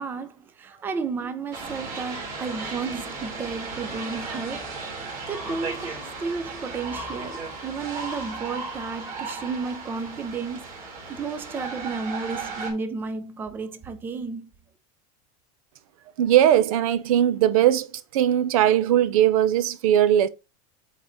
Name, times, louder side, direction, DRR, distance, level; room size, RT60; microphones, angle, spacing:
voice 1, 0.0-4.8 5.3-14.5, right 4 dB, 10° right, 0.4 m, -33 dB
sound 1, 1.5-12.7, right 3 dB, 45° right, 2.8 m, -35 dB
voice 2, 16.2-17.9 18.1-20.3, right 11 dB, 85° right, 0.7 m, -19 dB
8.0 x 4.0 x 3.0 m
supercardioid pair, 170°, 18 cm